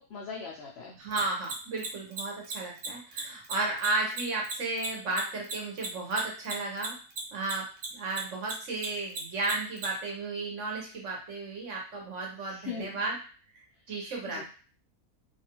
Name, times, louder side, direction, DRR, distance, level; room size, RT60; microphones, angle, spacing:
voice 1, 0.0-1.0 12.4-13.0 14.3-14.4, left 5 dB, 70° left, -2 dB, 0.6 m, -40 dB
voice 2, 1.0-6.9 7.3-13.1 13.9-14.4, right 3 dB, 55° right, -1 dB, 1.1 m, -33 dB
Mechanisms, 1.1-9.9, right 5 dB, 80° right, 1.2 m, -35 dB
2.7 x 2.4 x 2.9 m, 0.38 s
omnidirectional pair, 1.6 m